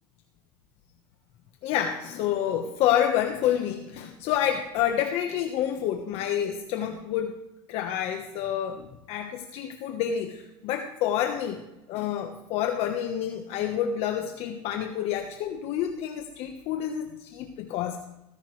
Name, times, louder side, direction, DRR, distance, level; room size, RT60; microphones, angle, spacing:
voice 1, 1.6-7.3 7.7-11.6 11.9-18.1, left 10 dB, 60° left, 5 dB, 1.2 m, -28 dB
15.5 x 15.0 x 3.3 m, 0.96 s
supercardioid pair, 115°, 12 cm